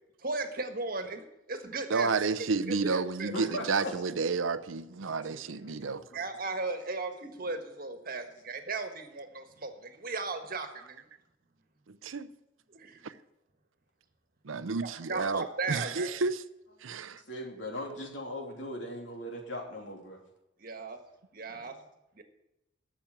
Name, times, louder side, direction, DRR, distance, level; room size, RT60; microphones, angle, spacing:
voice 1, 0.2-2.1 2.7-3.3 6.1-11.1 12.7-13.0 14.8-16.2 20.6-21.0 21.3-21.7 22.2-22.3, right 3 dB, 45° right, 1.5 m, -36 dB
voice 2, 1.9-6.0 11.9-12.3 13.0-13.1 14.4-16.4 16.8-17.2, right 4 dB, 85° right, 0.6 m, -31 dB
voice 3, 3.3-3.9 5.1-6.4 7.3-7.5 14.6-15.0 17.1-20.2 21.6-21.7, left 1 dB, 70° left, 3.1 m, -40 dB
12.0 x 7.3 x 8.9 m
head